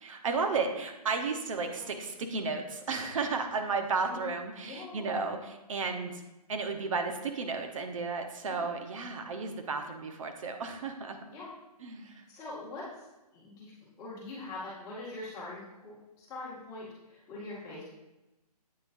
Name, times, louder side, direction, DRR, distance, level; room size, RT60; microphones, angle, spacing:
voice 1, 0.0-6.2 6.5-11.2 11.8-12.2, right 4 dB, 55° right, 5 dB, 1.1 m, -33 dB
voice 2, 4.6-5.0 8.4-8.7 11.3-11.5 12.0-13.0 13.3-13.7 14.0-17.9, left 2 dB, 15° left, -8 dB, 2.0 m, -43 dB
8.5 x 8.2 x 2.7 m, 1.0 s
hypercardioid pair, 155°, 21 cm